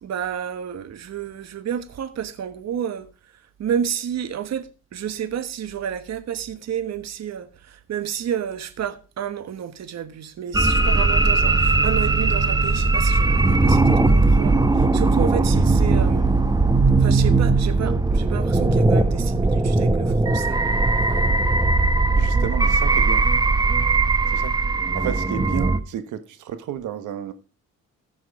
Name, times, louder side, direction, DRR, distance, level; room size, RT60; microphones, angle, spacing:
voice 1, 0.0-3.1 3.6-16.4 17.0-20.6 21.1-21.5, right 9 dB, 60° right, 1.2 m, -30 dB
sound 1, 10.5-25.8, right 3 dB, 15° right, 0.9 m, -19 dB
voice 2, 22.1-23.3 24.3-24.6 24.9-27.3, right 10 dB, 80° right, 1.3 m, -31 dB
14.5 x 6.3 x 4.7 m
cardioid pair, 90°, 30 cm